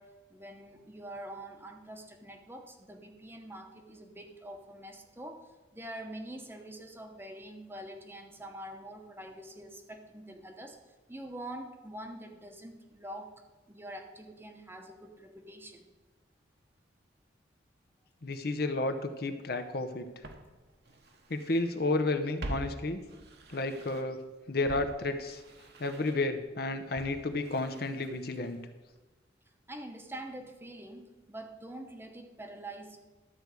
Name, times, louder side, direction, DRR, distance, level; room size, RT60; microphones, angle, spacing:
voice 1, 0.0-13.3 13.7-15.8 29.7-33.0, right 1 dB, 10° right, 4 dB, 0.9 m, -45 dB
voice 2, 18.2-20.1 21.3-23.0 23.5-24.2 24.5-25.4 25.8-28.6, left 2 dB, 55° left, 7 dB, 0.8 m, -32 dB
Walk footsteps, 19.5-19.6 20.2-21.7 22.0-24.2 24.6-28.7 29.0-29.1, right 1 dB, 60° right, 1.2 m, -46 dB
12.5 x 4.7 x 8.2 m, 1.2 s
head